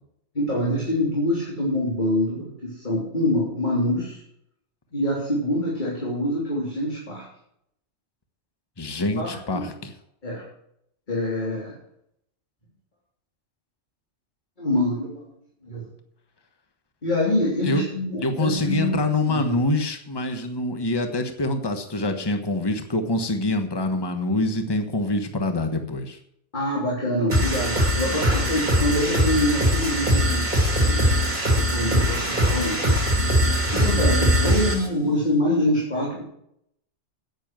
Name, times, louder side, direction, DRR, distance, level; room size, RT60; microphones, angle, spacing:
voice 1, 0.4-4.2 4.9-7.2 9.2-9.7 10.2-10.4 11.1-11.8 14.6-15.3 15.6-15.8 17.0-19.6 26.5-30.5 30.8-31.1 31.5-33.2 33.7-36.2, left 1 dB, 40° left, -4 dB, 3.4 m, -25 dB
voice 2, 8.8-9.9 17.6-17.8 18.2-26.2, left 2 dB, 20° left, 7 dB, 1.3 m, -25 dB
sound 1, 27.3-34.9, equal, 40° right, 3.2 m, -21 dB
10.0 x 9.5 x 7.5 m, 0.74 s
omnidirectional pair, 1.2 m